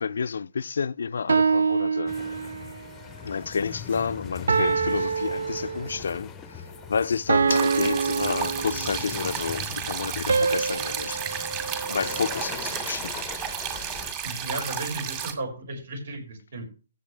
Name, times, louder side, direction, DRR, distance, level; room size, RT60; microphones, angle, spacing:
voice 1, 0.0-2.2 3.2-11.6 11.9-13.3, left 5 dB, 75° left, 0.4 m, -30 dB
sound 1, 1.3-2.8 4.5-6.1 7.3-9.2 10.3-12.6, right 5 dB, 80° right, 0.4 m, -26 dB
sound 2, 2.1-14.1, left 9 dB, 15° left, 0.6 m, -41 dB
sound 3, 7.5-15.3, right 8 dB, 30° right, 2.1 m, -33 dB
voice 2, 14.2-16.6, right 2 dB, 65° right, 5.8 m, -34 dB
14.5 x 7.9 x 3.4 m
hypercardioid pair, 155°, 0 cm